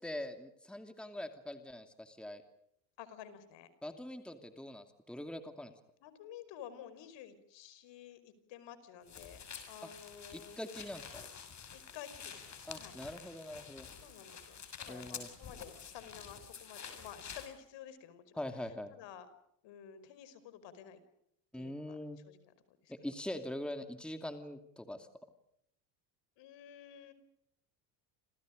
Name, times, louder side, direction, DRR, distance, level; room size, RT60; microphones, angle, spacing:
voice 1, 0.0-2.4 3.8-5.7 10.3-11.3 12.7-13.9 14.9-15.3 18.4-18.9 21.5-22.2 22.9-25.1, left 1 dB, ahead, 6 dB, 2.7 m, -43 dB
voice 2, 3.0-3.7 6.0-10.6 11.7-13.0 14.0-18.4 18.9-19.3 19.6-21.0 21.5-22.0 22.2-22.9 26.4-27.1, left 9 dB, 60° left, 13 dB, 5.2 m, -52 dB
sound 1, 9.1-17.5, left 6 dB, 35° left, 6.9 m, -49 dB
29.5 x 28.0 x 5.2 m, 0.74 s
supercardioid pair, 110°, 49 cm